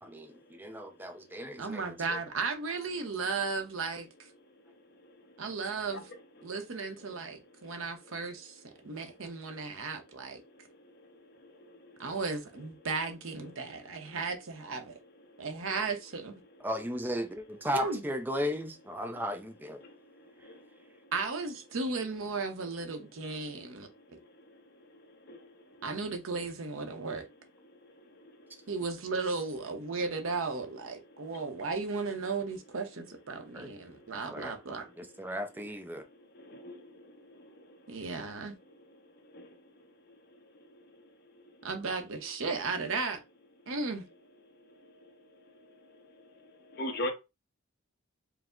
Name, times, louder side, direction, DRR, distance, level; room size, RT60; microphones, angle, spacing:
voice 1, 0.0-1.8 2.1-2.2 16.6-19.8 33.5-33.7 34.3-36.0, equal, 10° right, 0.4 m, -36 dB
voice 2, 1.6-4.1 5.4-6.1 6.4-10.4 12.0-15.0 15.4-16.3 17.7-18.0 21.1-23.9 25.8-27.2 28.7-34.8 37.9-38.5 41.6-43.2 43.7-44.0, right 4 dB, 75° right, 0.8 m, -35 dB
voice 3, 46.7-47.1, left 1 dB, 50° left, 0.8 m, -34 dB
4.7 x 2.0 x 3.7 m
head